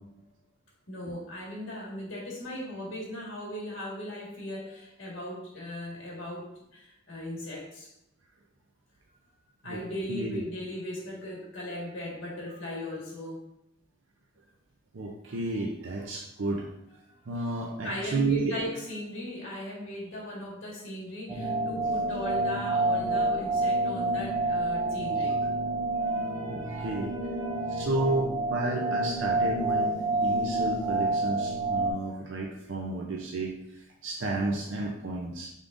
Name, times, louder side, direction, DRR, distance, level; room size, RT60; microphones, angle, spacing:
voice 1, 0.9-7.9 9.6-13.4 17.8-25.4 25.9-27.9, left 1 dB, 75° left, -3 dB, 1.6 m, -38 dB
voice 2, 10.1-10.4 14.9-16.7 17.3-18.5 26.5-27.1 27.7-29.9 30.2-33.5 34.0-35.5, right 2 dB, 70° right, 0 dB, 0.5 m, -31 dB
sound 1, 21.3-31.9, right 2 dB, 15° right, 0.4 m, -28 dB
5.1 x 3.6 x 2.5 m, 0.84 s
head